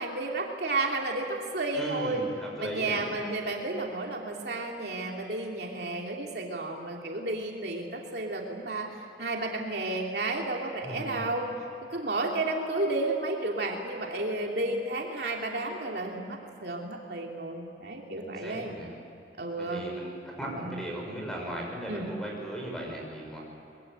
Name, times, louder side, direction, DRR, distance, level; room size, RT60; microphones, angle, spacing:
voice 1, 0.0-2.2 2.6-8.9 9.2-11.5 11.9-18.7 19.4-19.8 20.5-20.8 21.9-22.1, right 2 dB, 60° right, 0 dB, 2.9 m, -32 dB
voice 2, 1.7-3.0 10.8-11.3 18.2-18.9 19.6-23.4, right 1 dB, 5° left, -1 dB, 6.2 m, -37 dB
23.5 x 21.5 x 9.0 m, 2.9 s
head